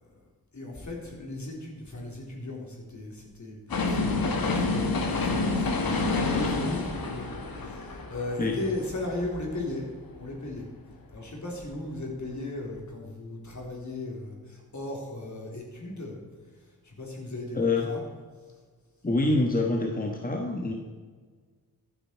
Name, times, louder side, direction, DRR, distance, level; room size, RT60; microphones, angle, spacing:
voice 1, 0.5-9.9 10.2-10.7 11.1-16.2 16.8-18.0, left 2 dB, 50° left, -1 dB, 3.8 m, -37 dB
sound 1, 3.7-9.7 10.1-10.2, left 3 dB, 75° left, 2.0 m, -28 dB
voice 2, 17.5-17.9 19.0-20.7, left 2 dB, 25° left, 1 dB, 1.4 m, -26 dB
14.0 x 9.2 x 4.6 m, 1.5 s
wide cardioid pair, 85°, 36 cm